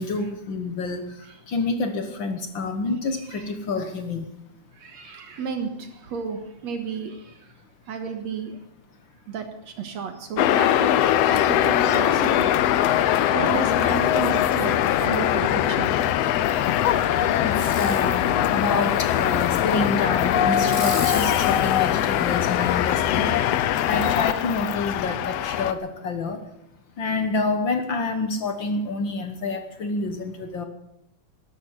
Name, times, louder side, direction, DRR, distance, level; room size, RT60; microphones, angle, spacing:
voice 1, 0.0-1.1 1.5-4.3 17.4-23.3 23.9-26.4 27.0-30.6, left 3 dB, 55° left, 8 dB, 1.4 m, -28 dB
voice 2, 4.8-7.3 7.9-8.6 9.3-10.9 11.2-16.0 16.2-16.7, right 6 dB, 65° right, 6 dB, 2.4 m, -33 dB
sound 1, 10.4-25.7, left 11 dB, 75° left, 1.5 m, -21 dB
Fireworks, 17.5-18.1 18.7-19.7 20.5-22.9 23.4-23.5, left 2 dB, 15° left, 1.7 m, -37 dB
13.0 x 11.0 x 9.6 m, 0.81 s
omnidirectional pair, 3.6 m